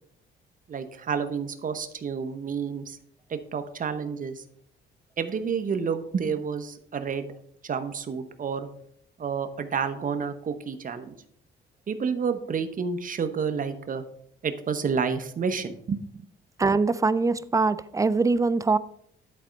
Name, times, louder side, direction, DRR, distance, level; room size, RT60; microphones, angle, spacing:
voice 1, 0.7-3.0 3.3-4.4 5.2-7.3 7.6-8.7 9.2-11.2 11.9-14.0 14.4-16.3, right 6 dB, 45° right, 1.0 m, -30 dB
voice 2, 16.6-18.8, right 3 dB, 15° right, 0.4 m, -23 dB
11.0 x 4.3 x 5.2 m
cardioid pair, 90°, 20 cm